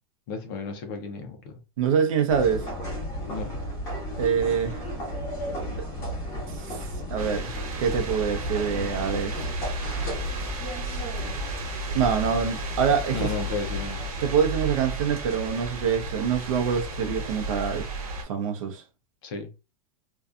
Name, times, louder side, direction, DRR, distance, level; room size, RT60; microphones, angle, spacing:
voice 1, 0.3-1.5 3.3-3.6 13.1-14.0 19.2-19.5, left 4 dB, 40° left, 0.5 m, -33 dB
voice 2, 1.8-2.7 4.2-4.9 5.7-5.9 6.5-9.5 10.4-10.5 11.9-13.3 14.2-17.9 18.2-18.8, right 7 dB, 65° right, 0.6 m, -25 dB
sound 1, 2.3-17.6, equal, 20° left, 1.1 m, -35 dB
sound 2, 7.2-18.2, right 1 dB, 85° right, 1.2 m, -34 dB
2.6 x 2.2 x 2.4 m
supercardioid pair, 165°, 18 cm